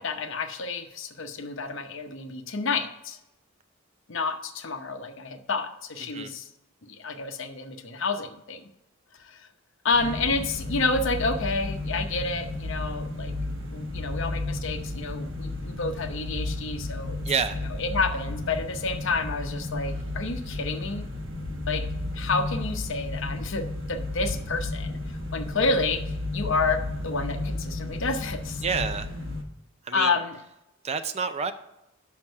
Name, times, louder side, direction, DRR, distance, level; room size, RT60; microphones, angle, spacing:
voice 1, 0.0-3.2 4.1-6.5 6.9-8.6 9.2-9.5 9.8-13.3 13.7-17.2 17.8-21.0 21.7-21.8 22.1-28.6 29.9-30.4, left 3 dB, 60° left, 7 dB, 0.8 m, -29 dB
voice 2, 6.0-6.4 17.2-17.6 28.6-29.1 29.8-30.1 30.8-31.5, right 5 dB, 30° right, 10 dB, 0.4 m, -28 dB
sound 1, 9.9-29.4, left 2 dB, 65° right, 1.2 m, -33 dB
6.2 x 5.9 x 5.4 m, 0.88 s
head